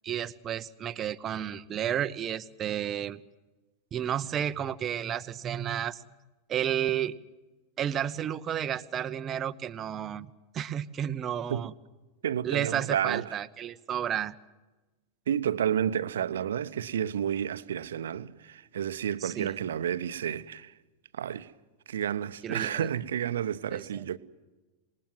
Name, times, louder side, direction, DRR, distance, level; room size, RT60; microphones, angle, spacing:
voice 1, 0.0-3.2 3.9-6.0 6.5-7.1 7.8-10.3 10.5-11.7 12.4-14.3 19.2-19.5 22.4-22.9 23.7-24.0, right 10 dB, 25° right, 0.8 m, -32 dB
voice 2, 12.2-13.4 15.3-20.7 21.1-21.5 21.9-24.2, right 9 dB, 65° right, 0.9 m, -31 dB
27.0 x 20.5 x 7.6 m
figure-of-eight pair, 90°, 0 cm